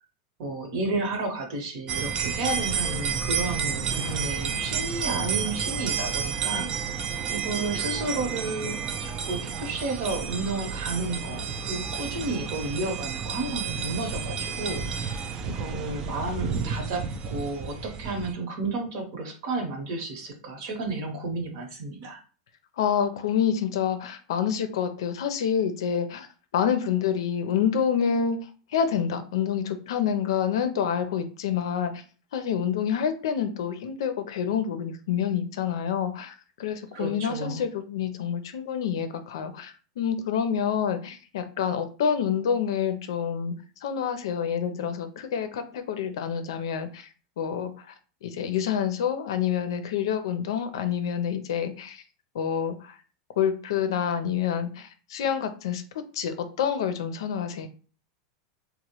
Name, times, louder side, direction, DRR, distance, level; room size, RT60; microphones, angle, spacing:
voice 1, 0.4-7.0 7.3-15.2 15.4-22.2 36.9-37.6, right 2 dB, 60° right, 3 dB, 1.0 m, -32 dB
sound 1, 1.9-18.3, right 6 dB, 30° right, 0.3 m, -31 dB
voice 2, 22.8-26.3 26.5-28.4 28.7-31.9 32.3-36.3 36.6-43.5 43.8-47.1 47.4-47.7 48.2-52.0 52.3-52.7 53.4-55.8 56.1-57.7, left 8 dB, 80° left, 9 dB, 0.5 m, -27 dB
3.0 x 2.1 x 2.9 m, 0.38 s
supercardioid pair, 140°, 2 cm